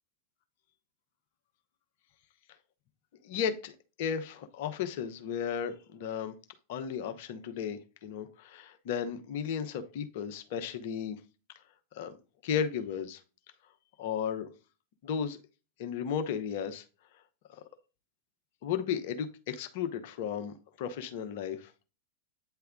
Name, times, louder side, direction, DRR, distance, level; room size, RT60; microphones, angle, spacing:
voice 1, 3.2-6.3 6.7-11.2 11.9-12.1 12.4-13.2 14.0-14.5 15.0-15.4 15.8-16.8 17.5-17.6 18.6-21.7, left 8 dB, 50° left, 0.8 m, -34 dB
8.9 x 3.4 x 3.6 m
figure-of-eight pair, 90°, 0 cm